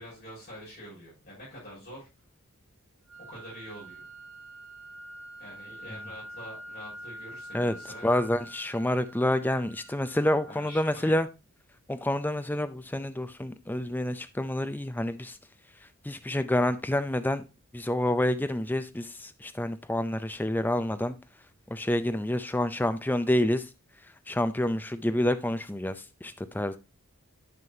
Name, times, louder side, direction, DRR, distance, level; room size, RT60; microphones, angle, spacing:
voice 1, 0.0-2.1 3.2-4.1 5.4-8.1 10.4-11.2, equal, 45° left, 5.7 m, -46 dB
sound 1, 3.1-11.1, right 1 dB, 65° right, 1.3 m, -46 dB
voice 2, 8.0-11.3 11.9-15.4 16.0-17.4 17.7-21.2 21.7-23.7 24.3-26.8, left 1 dB, 10° left, 0.4 m, -28 dB
11.0 x 5.5 x 2.8 m
head